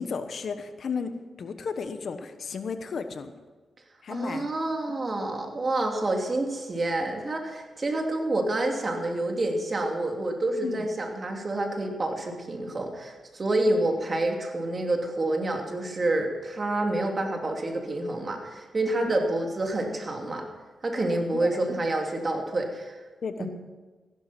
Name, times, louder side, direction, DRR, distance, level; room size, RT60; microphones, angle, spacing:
voice 1, 0.0-3.3 4.0-4.5 10.6-10.9 19.1-19.2 21.4-21.6 23.2-23.5, left 5 dB, 65° left, 9 dB, 1.1 m, -33 dB
voice 2, 4.1-20.5 20.8-22.9 23.4-23.5, right 2 dB, 40° right, 2 dB, 2.7 m, -28 dB
15.0 x 11.5 x 6.0 m, 1.3 s
cardioid pair, 75°, 0 cm